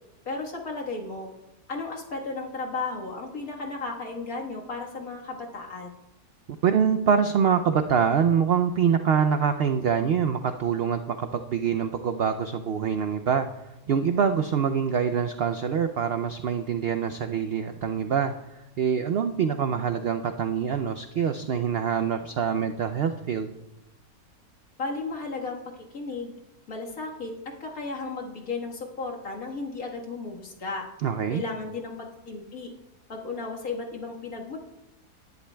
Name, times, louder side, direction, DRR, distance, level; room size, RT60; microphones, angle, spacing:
voice 1, 0.3-1.3 1.7-6.0 24.8-26.3 26.7-30.9 31.3-32.7 33.1-34.6, left 3 dB, 65° left, 0 dB, 2.0 m, -34 dB
voice 2, 6.6-13.5 13.9-18.3 18.8-23.5 31.0-31.4, right 7 dB, 80° right, 7 dB, 0.5 m, -25 dB
20.0 x 10.5 x 2.3 m, 0.96 s
omnidirectional pair, 1.6 m